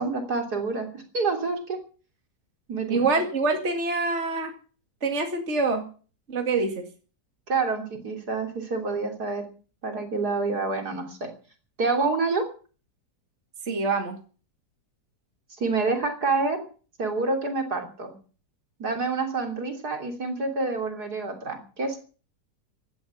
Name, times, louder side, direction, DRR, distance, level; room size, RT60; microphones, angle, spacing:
voice 1, 0.0-1.8 2.7-3.1 7.5-9.4 9.8-11.3 11.8-12.5 15.6-16.6 17.0-18.1 18.8-22.0, right 3 dB, 65° right, 4 dB, 3.8 m, -27 dB
voice 2, 2.9-4.5 5.0-5.8 6.3-6.8 13.7-14.2, right 3 dB, 40° right, 4 dB, 2.4 m, -25 dB
16.0 x 11.5 x 7.3 m, 0.39 s
omnidirectional pair, 1.8 m